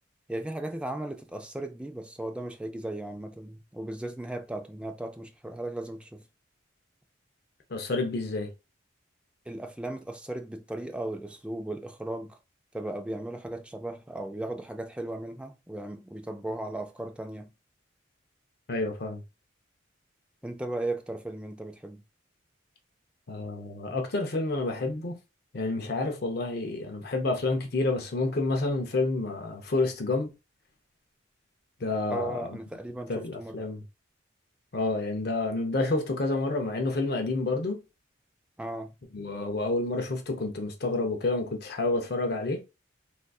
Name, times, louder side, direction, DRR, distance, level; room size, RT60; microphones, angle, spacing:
voice 1, 0.3-6.2 9.5-12.4 12.7-17.5 20.4-22.0 32.1-33.6 38.6-38.9, right 1 dB, 5° right, 0.3 m, -36 dB
voice 2, 7.7-8.5 18.7-19.2 23.3-25.2 25.5-30.3 31.8-32.6 33.1-33.8 34.7-37.8 39.1-42.6, left 2 dB, 50° left, 0.5 m, -29 dB
3.6 x 2.5 x 2.3 m
head